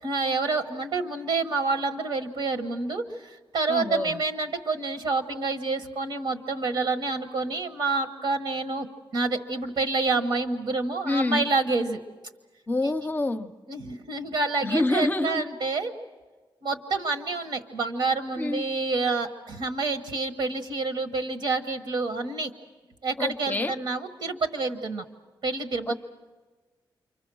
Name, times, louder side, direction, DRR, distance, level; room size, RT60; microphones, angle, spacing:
voice 1, 0.0-8.9 9.1-12.0 12.8-12.9 13.7-15.9 16.6-22.5 23.0-25.0 25.4-25.9, right 3 dB, 70° right, 6 dB, 1.4 m, -28 dB
voice 2, 3.7-4.2 11.0-11.5 12.7-13.5 14.6-15.4 18.4-18.6 23.2-23.7 25.9-26.0, left 2 dB, 20° left, 10 dB, 0.7 m, -27 dB
29.0 x 25.0 x 6.3 m, 1.3 s
wide cardioid pair, 150°, 8 cm